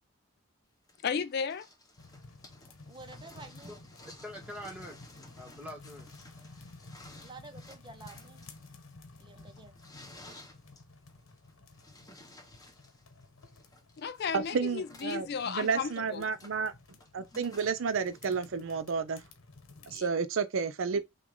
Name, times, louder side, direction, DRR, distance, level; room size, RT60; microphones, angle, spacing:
sound 1, 0.9-19.0 20.0-20.1, left 2 dB, 15° left, 1.9 m, -56 dB
voice 1, 1.0-1.7 14.0-16.2 19.9-20.1, left 6 dB, 50° left, 0.4 m, -34 dB
sound 2, 2.0-20.0, left 3 dB, 70° left, 1.0 m, -54 dB
voice 2, 2.9-3.7 7.2-8.4 9.2-9.8, right 3 dB, 20° right, 0.7 m, -50 dB
voice 3, 4.0-5.0 5.4-6.1 17.3-17.4 20.9-21.0, equal, 5° right, 1.4 m, -44 dB
voice 4, 14.3-16.7 17.1-19.2 19.9-21.0, right 5 dB, 65° right, 0.5 m, -31 dB
6.1 x 2.4 x 3.6 m
head